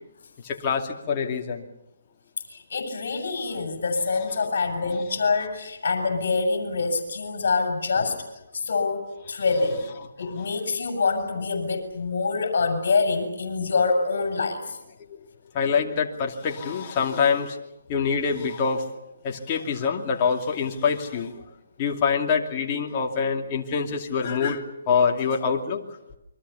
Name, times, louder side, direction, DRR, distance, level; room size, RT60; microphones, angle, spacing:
voice 1, 0.4-1.6 4.1-5.0 9.5-10.0 10.2-10.5 15.5-17.6 17.9-18.9 19.2-21.4 21.8-25.8, left 6 dB, 25° left, 1 dB, 2.7 m, -26 dB
voice 2, 2.5-8.2 8.5-9.8 10.2-14.8, left 4 dB, 60° left, 4 dB, 7.0 m, -25 dB
28.5 x 23.5 x 7.1 m, 0.87 s
hypercardioid pair, 160°, 0 cm